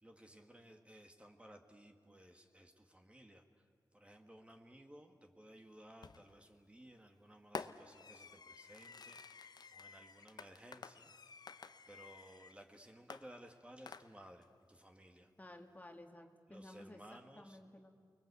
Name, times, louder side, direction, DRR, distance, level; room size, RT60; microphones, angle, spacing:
voice 1, 0.0-3.7 3.9-9.2 9.7-11.1 11.9-15.3 16.5-17.6, right 1 dB, 15° right, 4 dB, 1.9 m, -58 dB
Fireworks, 6.0-6.4 7.6-12.6 13.1-14.4, left 5 dB, 65° left, 0.8 m, -51 dB
voice 2, 15.4-17.9, left 1 dB, 20° left, 4 dB, 2.1 m, -55 dB
30.0 x 21.5 x 8.3 m, 2.1 s
wide cardioid pair, 70°, 8 cm